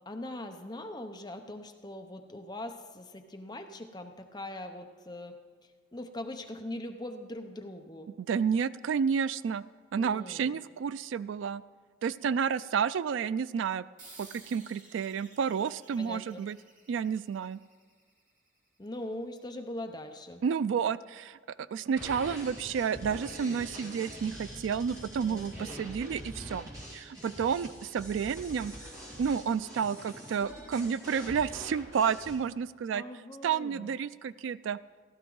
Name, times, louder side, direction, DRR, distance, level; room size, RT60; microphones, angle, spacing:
voice 1, 0.1-5.3 5.9-8.1 10.0-10.5 16.0-16.4 18.8-20.4 25.2-25.9 32.9-33.9, left 1 dB, 20° left, 5 dB, 0.7 m, -41 dB
voice 2, 8.2-9.6 9.9-11.6 12.0-13.8 14.2-16.6 16.9-17.6 20.4-28.7 29.2-33.0 33.4-34.8, right 7 dB, 85° right, 16 dB, 0.3 m, -31 dB
sound 1, 14.0-18.9, right 3 dB, 40° right, 2.4 m, -55 dB
sound 2, 22.0-32.3, equal, 15° right, 2.3 m, -44 dB
15.5 x 13.0 x 3.9 m, 1.5 s
head